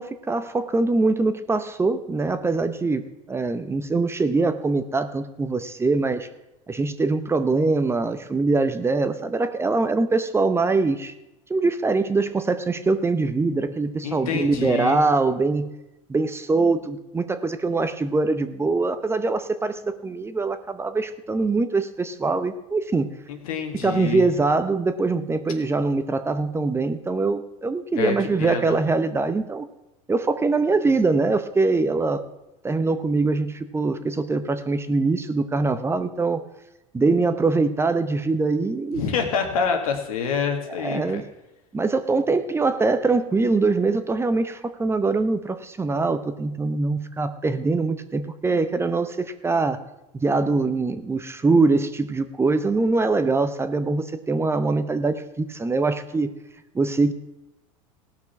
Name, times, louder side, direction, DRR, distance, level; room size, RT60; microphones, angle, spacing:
voice 1, 0.0-6.3 6.7-11.1 11.5-15.7 16.1-23.1 23.8-29.6 30.1-32.2 32.6-36.4 36.9-39.0 40.7-41.3 41.7-49.8 50.1-56.3 56.7-57.1, right 3 dB, 15° right, 10 dB, 0.7 m, -23 dB
voice 2, 14.0-15.0 23.3-24.3 28.0-28.8 38.9-41.2, left 6 dB, 85° left, 4 dB, 1.9 m, -27 dB
17.0 x 6.2 x 5.8 m, 0.94 s
supercardioid pair, 110°, 18 cm